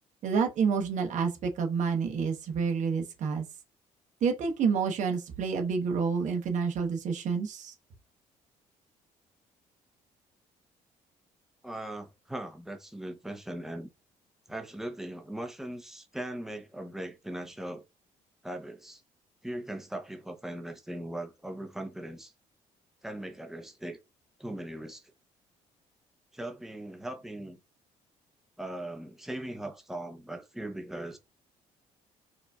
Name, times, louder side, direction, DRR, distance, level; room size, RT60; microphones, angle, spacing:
voice 1, 0.2-3.4 4.2-7.7, right 5 dB, 60° right, 1.0 m, -28 dB
voice 2, 11.6-13.9 14.5-17.8 18.4-19.0 19.4-22.3 23.0-24.0 24.4-25.1 26.3-27.6 28.6-31.2, right 1 dB, 5° right, 0.7 m, -39 dB
4.7 x 2.6 x 2.3 m
cardioid pair, 90°, 14 cm